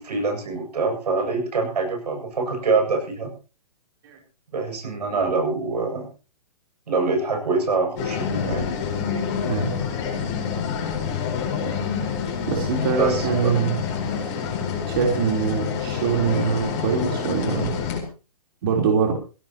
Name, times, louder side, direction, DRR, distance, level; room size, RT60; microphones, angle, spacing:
voice 1, 0.0-3.3 4.5-6.1 6.9-8.7 13.0-13.5, right 4 dB, 85° right, 3 dB, 7.8 m, -25 dB
sound 1, 8.0-18.0, left 7 dB, 25° left, 4.8 m, -27 dB
voice 2, 9.4-9.9 12.5-13.8 14.9-17.9 18.6-19.1, right 6 dB, 35° right, 1 dB, 3.9 m, -23 dB
20.0 x 16.5 x 3.1 m, 0.34 s
hypercardioid pair, 170°, 20 cm